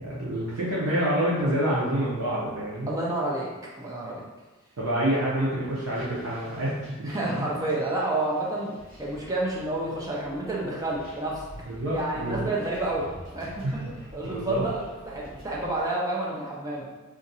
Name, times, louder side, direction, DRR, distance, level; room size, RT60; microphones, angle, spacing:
voice 1, 0.0-2.9 4.8-7.5 11.6-12.5 13.6-13.9 14.2-14.6, right 1 dB, 85° right, -8 dB, 0.7 m, -27 dB
voice 2, 2.9-3.5 3.8-4.2 7.0-8.7 9.0-11.4 11.9-13.6 14.1-16.9, right 2 dB, 15° right, -4 dB, 0.5 m, -29 dB
sound 1, 5.7-15.8, left 1 dB, 60° right, 1.4 m, -46 dB
2.6 x 2.5 x 4.0 m, 1.2 s
head